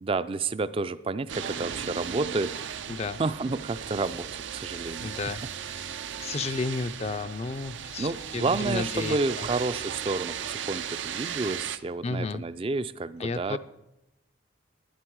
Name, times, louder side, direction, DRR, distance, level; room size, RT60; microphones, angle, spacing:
voice 1, 0.0-2.5 3.2-5.2 8.0-13.6, right 3 dB, 30° right, 15 dB, 0.4 m, -30 dB
sound 1, 1.3-11.8, right 8 dB, 75° right, 0.5 m, -36 dB
voice 2, 5.0-8.1 8.3-9.5 12.0-12.4 13.2-13.6, left 3 dB, 35° left, 11 dB, 0.4 m, -33 dB
11.5 x 11.0 x 4.7 m, 0.90 s
head